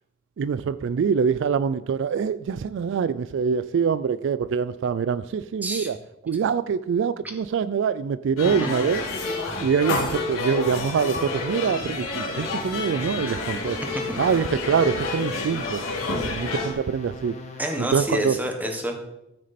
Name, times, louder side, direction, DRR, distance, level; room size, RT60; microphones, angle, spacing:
voice 1, 0.4-6.0 6.2-9.0 9.6-13.8 14.2-15.8 16.2-17.4 17.8-18.4, right 6 dB, 60° right, 15 dB, 0.3 m, -24 dB
sound 1, 8.4-16.7, left 3 dB, 80° left, 2.4 m, -29 dB
sound 2, 10.7-18.3, left 2 dB, 30° left, 1.3 m, -42 dB
voice 2, 17.6-19.0, equal, 10° right, 3 dB, 1.2 m, -28 dB
13.0 x 6.2 x 4.2 m, 0.90 s
head